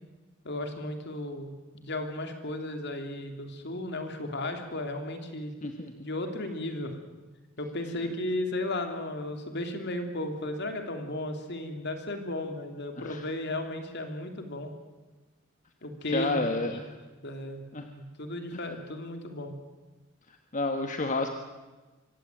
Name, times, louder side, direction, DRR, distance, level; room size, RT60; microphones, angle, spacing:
voice 1, 0.4-5.5 6.0-7.0 7.6-14.7 15.8-16.9 17.2-17.6 18.0-19.5, left 1 dB, 55° left, 6 dB, 3.0 m, -35 dB
voice 2, 5.6-5.9 13.0-13.2 16.1-16.9 17.7-17.9 18.5-18.6 20.5-21.3, left 2 dB, 40° left, 5 dB, 1.5 m, -30 dB
24.5 x 16.5 x 9.2 m, 1.2 s
head